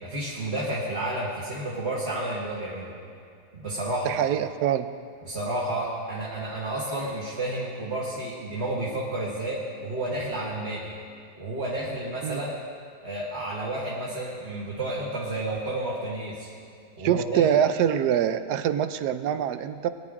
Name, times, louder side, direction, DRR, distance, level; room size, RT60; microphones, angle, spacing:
voice 1, 0.0-2.9 3.5-4.2 5.2-11.0 11.4-12.6 13.0-16.5 17.0-17.4, right 1 dB, 40° right, -6 dB, 2.0 m, -31 dB
voice 2, 4.0-4.9 12.2-12.4 17.0-19.9, right 9 dB, 80° right, 11 dB, 1.2 m, -24 dB
21.5 x 9.8 x 3.7 m, 2.3 s
omnidirectional pair, 1.7 m